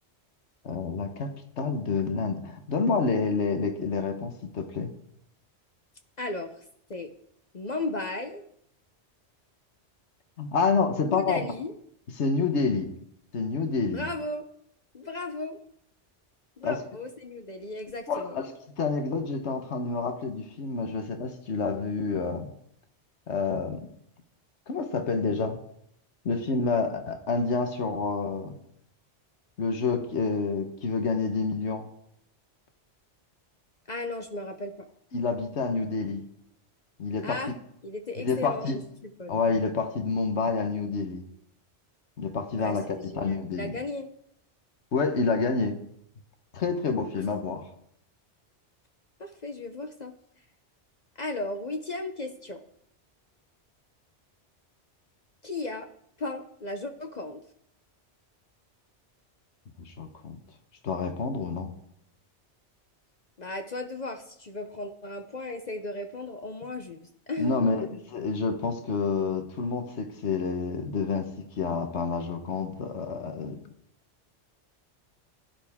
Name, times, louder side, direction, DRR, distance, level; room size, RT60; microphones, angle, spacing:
voice 1, 0.6-4.9 10.4-11.5 12.2-12.9 13.3-14.1 16.6-16.8 18.1-18.5 18.8-22.5 23.3-23.8 24.7-25.6 26.2-28.6 29.6-31.9 35.1-36.2 37.0-37.4 38.2-38.8 39.3-41.2 42.2-43.8 44.9-45.8 46.5-47.6 59.8-60.4 60.8-61.7 67.4-73.6, left 4 dB, 70° left, 6 dB, 1.5 m, -28 dB
voice 2, 6.2-6.6 6.9-7.1 7.5-8.4 11.0-11.7 13.9-14.5 14.9-15.6 16.6-18.4 33.9-34.9 37.2-37.5 37.8-39.3 42.6-44.1 49.2-50.1 51.2-52.6 55.4-55.9 56.2-57.4 63.4-67.0 67.3-67.7, left 2 dB, 40° left, 6 dB, 0.9 m, -35 dB
16.5 x 11.0 x 3.6 m, 0.71 s
omnidirectional pair, 1.2 m